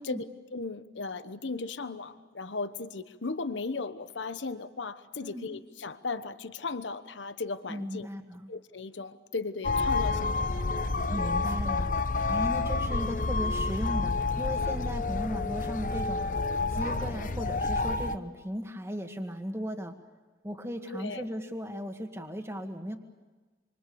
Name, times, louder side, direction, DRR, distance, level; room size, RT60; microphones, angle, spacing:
voice 1, 0.0-8.1 8.5-10.6 20.9-21.2, left 3 dB, 85° left, 12 dB, 1.1 m, -36 dB
voice 2, 5.2-5.5 7.7-8.5 11.1-11.9 12.3-16.3 16.7-19.9 20.4-22.9, equal, 15° right, 4 dB, 2.0 m, -36 dB
sound 1, 9.6-18.2, left 3 dB, 45° left, 0.8 m, -29 dB
27.0 x 26.0 x 7.1 m, 1.3 s
head